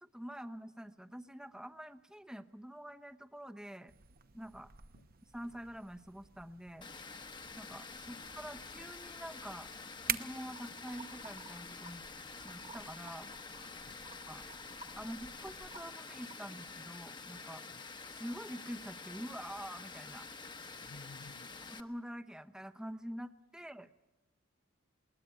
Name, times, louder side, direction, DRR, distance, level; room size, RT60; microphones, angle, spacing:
voice 1, 0.0-3.9 4.3-4.7 5.3-6.9 7.6-9.7 10.1-12.0 12.4-13.3 14.3-14.5 14.9-17.6 18.2-20.3 21.8-23.9, equal, 5° right, 9 dB, 0.8 m, -46 dB
sound 1, 3.9-15.8, right 10 dB, 50° right, 0.9 m, -48 dB
Water, 6.8-21.8, left 4 dB, 25° left, 1.0 m, -48 dB
sound 2, 10.5-12.0 12.3-16.7, right 4 dB, 30° right, 1.3 m, -55 dB
voice 2, 20.7-21.6 23.5-23.6, left 3 dB, 70° left, 8 dB, 0.8 m, -55 dB
21.0 x 20.0 x 8.9 m, 0.98 s
head